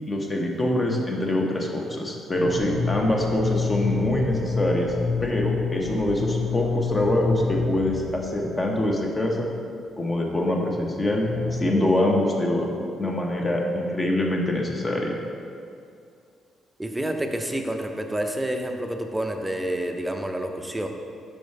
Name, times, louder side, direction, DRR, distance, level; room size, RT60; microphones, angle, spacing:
voice 1, 0.0-4.9 5.2-9.5 10.0-12.7 13.0-15.2, left 1 dB, 25° left, 0 dB, 1.0 m, -24 dB
sound 1, 2.3-8.9 11.1-11.5, left 4 dB, 85° left, 1.1 m, -28 dB
voice 2, 16.8-20.9, right 1 dB, 10° right, 4 dB, 0.6 m, -28 dB
5.0 x 4.8 x 5.3 m, 2.4 s
cardioid pair, 90°, 0 cm